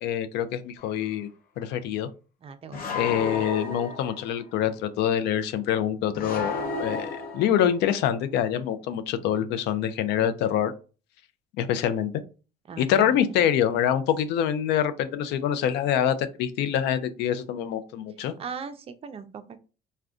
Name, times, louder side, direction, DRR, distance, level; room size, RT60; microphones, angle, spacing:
voice 1, 0.0-1.3 1.6-2.1 2.9-10.7 11.6-12.1 12.8-18.3, left 9 dB, 85° left, 12 dB, 0.4 m, -25 dB
sound 1, 0.8-1.0 2.7-4.4 6.1-7.9, left 4 dB, 60° left, 0.7 m, -33 dB
voice 2, 2.4-3.5 12.7-13.2 18.4-19.6, right 6 dB, 35° right, 10 dB, 0.4 m, -40 dB
3.5 x 2.2 x 2.4 m, 0.34 s
cardioid pair, 110°, 17 cm